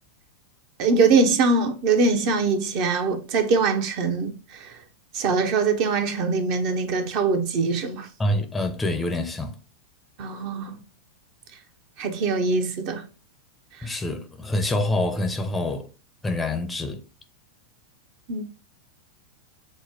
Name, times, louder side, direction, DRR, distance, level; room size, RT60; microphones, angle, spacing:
voice 1, 0.8-4.3 5.1-8.1 10.2-10.8 12.0-13.0 18.3-18.4, right 4 dB, 45° right, 0.8 m, -22 dB
voice 2, 8.2-9.5 13.8-15.9 16.2-17.0, left 1 dB, 10° left, 0.6 m, -26 dB
6.1 x 2.1 x 3.6 m
figure-of-eight pair, 90°, 0 cm